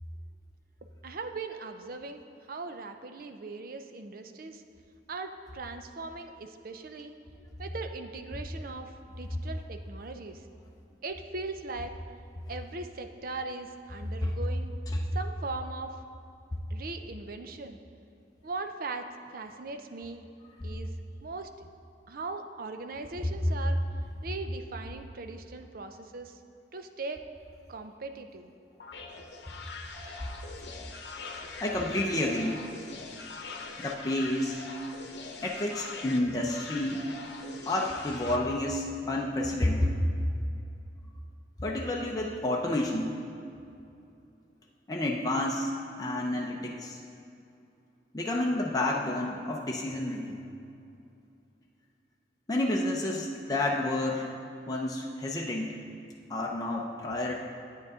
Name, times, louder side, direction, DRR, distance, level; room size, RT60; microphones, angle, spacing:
voice 1, 0.8-4.6 5.1-7.1 7.6-10.4 11.0-11.9 12.5-14.7 15.1-16.0 16.7-17.8 18.4-19.0 19.3-20.3 20.6-20.9 21.2-21.5 22.1-23.8 24.2-26.4 26.7-27.2 27.7-28.5, right 3 dB, 55° right, 7 dB, 0.6 m, -39 dB
sound 1, 28.8-38.4, left 4 dB, 75° left, 0.8 m, -43 dB
voice 2, 31.6-32.6 33.8-34.6 35.4-37.0 37.7-39.9 41.6-43.1 44.9-45.7 46.0-47.0 48.1-50.4 52.5-54.3 54.7-55.7 56.3-57.4, left 1 dB, 20° left, -2 dB, 0.6 m, -30 dB
10.5 x 8.9 x 3.7 m, 2.6 s
head